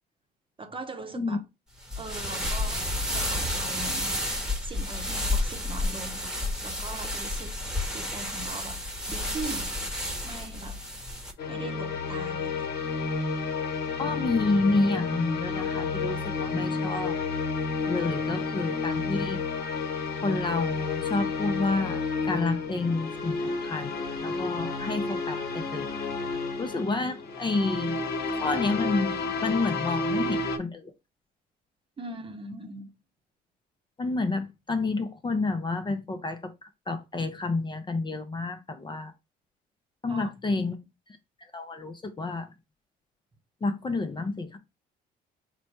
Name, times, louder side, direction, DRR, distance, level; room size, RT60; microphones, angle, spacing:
voice 1, 0.6-1.4 2.0-4.3 4.6-6.3 6.6-7.6 7.9-8.8 9.1-9.8 10.2-10.8 11.5-12.7 32.0-32.9 40.1-40.3 40.6-40.7, right 2 dB, 30° right, 0.9 m, -40 dB
sound 1, 1.8-11.3, left 1 dB, 5° right, 1.1 m, -31 dB
sound 2, 11.4-30.6, left 4 dB, 60° left, 1.1 m, -31 dB
voice 2, 14.0-17.1 17.9-19.4 20.2-23.4 23.6-23.9 24.2-26.0 26.6-28.0 28.3-30.9 34.0-36.5 36.9-39.1 40.0-40.8 41.5-42.5 43.6-44.6, left 3 dB, 25° left, 0.6 m, -29 dB
4.0 x 2.2 x 4.5 m
supercardioid pair, 75°, 19 cm